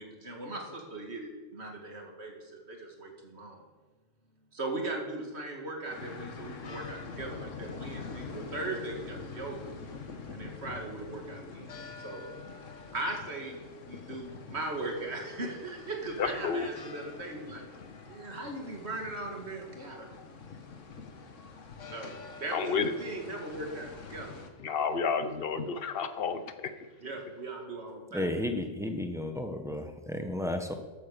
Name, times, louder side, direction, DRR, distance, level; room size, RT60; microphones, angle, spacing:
voice 1, 0.0-3.6 4.5-9.6 10.3-11.8 12.0-12.2 12.9-17.7 18.1-20.2 21.9-24.4 27.0-28.3, right 2 dB, 55° right, 1 dB, 2.5 m, -39 dB
sound 1, 5.9-24.5, left 4 dB, 75° left, 1.6 m, -45 dB
voice 2, 16.2-16.7 22.5-22.9 24.6-26.7, left 5 dB, 50° left, 10 dB, 1.1 m, -31 dB
voice 3, 28.1-30.7, left 1 dB, 5° right, 5 dB, 1.1 m, -33 dB
13.5 x 8.6 x 7.0 m, 1.3 s
omnidirectional pair, 1.3 m